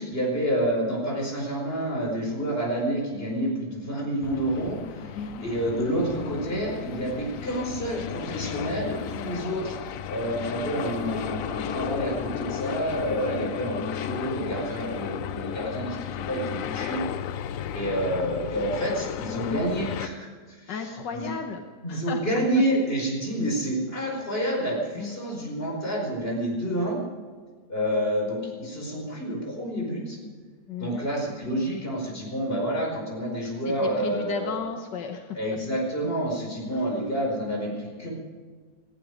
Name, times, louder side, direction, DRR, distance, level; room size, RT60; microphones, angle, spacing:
voice 1, 0.0-17.4 17.7-20.7 21.1-21.3 21.8-27.0 27.7-30.2 30.8-34.5 35.4-38.1, right 1 dB, 30° left, -1 dB, 5.4 m, -29 dB
sound 1, 4.2-20.1, left 10 dB, 65° left, 0.8 m, -34 dB
voice 2, 5.2-5.5 20.7-21.6 21.9-22.6 24.9-25.1 30.7-31.0 33.7-35.4 36.7-36.9, left 5 dB, 85° left, 4 dB, 1.8 m, -34 dB
18.5 x 15.0 x 5.2 m, 1.5 s
omnidirectional pair, 1.8 m